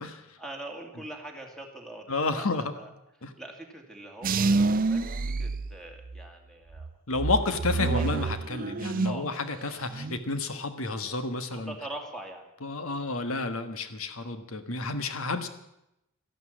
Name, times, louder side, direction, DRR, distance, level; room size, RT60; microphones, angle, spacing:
voice 1, 0.4-2.9 3.4-4.6 4.9-5.1 5.4-6.9 7.2-8.0 9.0-9.3 11.5-12.5, right 1 dB, 5° left, 2 dB, 2.4 m, -43 dB
voice 2, 2.1-2.6 3.2-3.3 7.1-11.7 12.6-15.5, left 3 dB, 75° left, 9 dB, 1.4 m, -30 dB
sound 1, 4.2-6.3 6.7-9.3 9.6-10.2, right 3 dB, 40° right, 0.5 m, -28 dB
13.5 x 11.5 x 8.6 m, 0.84 s
head